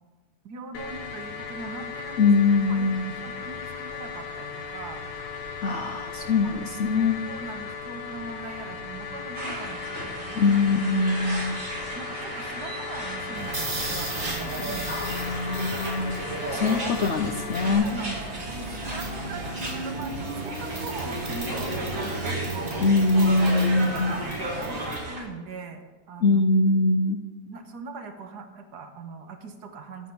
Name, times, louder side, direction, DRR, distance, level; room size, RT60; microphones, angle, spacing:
voice 1, 0.4-2.3 2.7-2.9 3.2-5.0 5.7-6.4 7.3-10.6 11.0-11.2 11.9-14.9 16.5-17.0 17.6-22.8 23.1-23.3 23.8-26.4 27.4-30.1, right 4 dB, 70° right, 6 dB, 1.6 m, -41 dB
sound 1, 0.7-17.7, left 5 dB, 85° left, 2.0 m, -37 dB
voice 2, 2.2-3.0 5.6-7.2 10.4-11.6 14.9-17.9 22.8-24.2 26.2-27.2, left 3 dB, 60° left, 5 dB, 0.7 m, -23 dB
sound 2, 9.3-25.2, right 1 dB, 50° right, 2.7 m, -35 dB
sound 3, 13.3-25.0, right 2 dB, 25° right, 1.5 m, -35 dB
9.4 x 8.5 x 5.8 m, 1.4 s
omnidirectional pair, 1.8 m